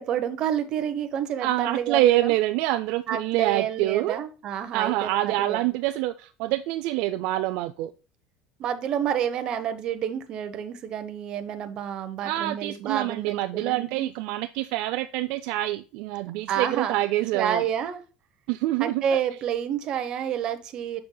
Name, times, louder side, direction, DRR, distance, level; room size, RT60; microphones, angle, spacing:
voice 1, 0.0-2.3 3.1-5.6 8.6-14.1 16.5-17.0 17.3-18.0 18.8-21.0, right 9 dB, 40° right, 0.9 m, -29 dB
voice 2, 1.4-4.2 4.7-7.9 12.2-17.6 18.5-19.0, right 16 dB, 65° right, 0.3 m, -26 dB
7.0 x 6.2 x 2.2 m
cardioid pair, 135°, 2 cm